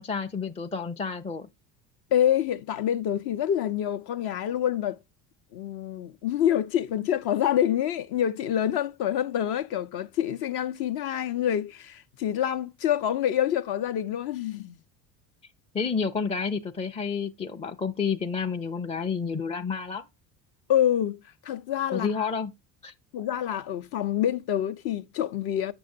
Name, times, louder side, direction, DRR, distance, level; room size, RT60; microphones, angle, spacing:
voice 1, 0.0-1.5 15.7-20.0 21.9-22.5 22.8-22.9, left 5 dB, 15° left, 0.4 m, -30 dB
voice 2, 2.1-5.0 5.5-14.8 20.7-22.3 23.1-25.7, left 10 dB, 55° left, 0.7 m, -27 dB
6.9 x 6.2 x 2.6 m
hypercardioid pair, 70°, 47 cm